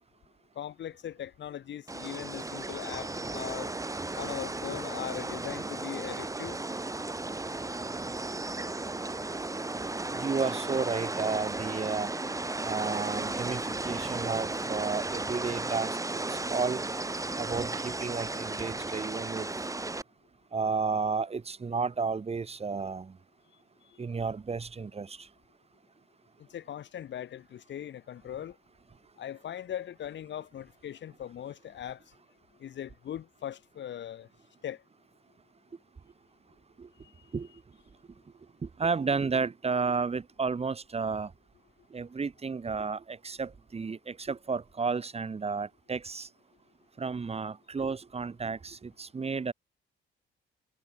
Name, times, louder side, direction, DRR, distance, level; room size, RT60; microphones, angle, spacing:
voice 1, 0.6-3.7 4.2-6.6 23.9-24.0 26.4-28.6 29.2-32.0 32.6-34.3 34.6-34.8 37.0-37.3, left 10 dB, 65° left, 3.7 m, -40 dB
sound 1, 1.9-20.0, right 2 dB, 15° right, 3.5 m, -35 dB
voice 2, 10.1-12.1 12.6-16.8 17.4-19.5 20.5-23.2 24.0-25.3 36.8-36.9 37.3-37.5 38.6-41.3 41.9-46.3 47.0-49.5, right 4 dB, 30° right, 2.0 m, -32 dB
cardioid pair, 90°, 20 cm